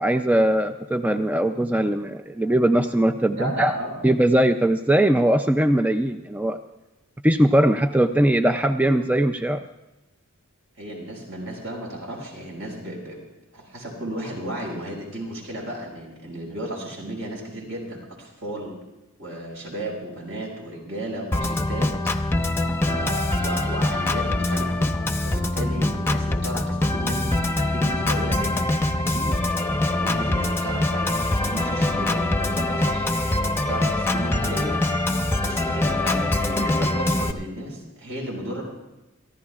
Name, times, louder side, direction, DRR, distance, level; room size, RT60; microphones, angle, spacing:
voice 1, 0.0-3.7 4.0-6.6 7.2-9.6, right 1 dB, 5° right, 7 dB, 0.4 m, -20 dB
voice 2, 3.3-4.1 10.8-13.2 13.5-18.8 19.2-22.0 22.9-24.8 25.2-29.4 29.9-34.8 35.4-38.6, right 1 dB, 70° right, -1 dB, 6.0 m, -34 dB
Organ, 21.3-37.3, left 1 dB, 10° left, 0.8 m, -24 dB
29.5 x 14.5 x 2.4 m, 1.0 s
head